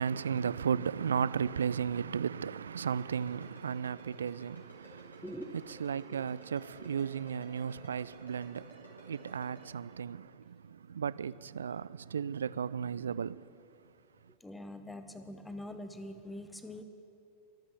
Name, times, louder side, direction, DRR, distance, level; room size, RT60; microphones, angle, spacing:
voice 1, 0.0-5.2 5.7-13.5, right 7 dB, 70° right, 0.3 m, -35 dB
Ringtone, 2.8-9.6, equal, 80° left, 4.3 m, -54 dB
voice 2, 5.2-5.8 6.0-6.2 6.8-6.9 14.4-16.8, left 1 dB, 5° left, 1.1 m, -44 dB
23.5 x 8.0 x 7.2 m
figure-of-eight pair, 90°, 0 cm